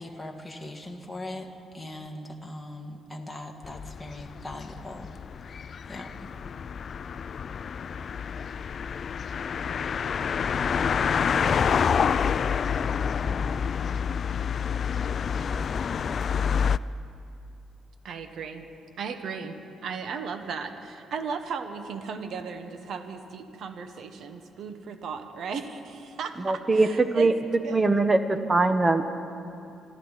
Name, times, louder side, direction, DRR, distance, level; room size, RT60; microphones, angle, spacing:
voice 1, 0.0-5.1 5.5-5.6 5.9-6.4, left 1 dB, 5° left, 0 dB, 1.8 m, -40 dB
sound 1, 3.6-16.8, left 7 dB, 50° left, 0.3 m, -28 dB
voice 2, 18.0-18.7 19.0-19.6 19.8-27.3 27.6-27.8, right 5 dB, 65° right, 7 dB, 1.1 m, -36 dB
voice 3, 26.4-27.3 27.7-29.1, right 3 dB, 25° right, 9 dB, 1.0 m, -22 dB
26.5 x 13.0 x 4.1 m, 2.6 s
cardioid pair, 90°, 0 cm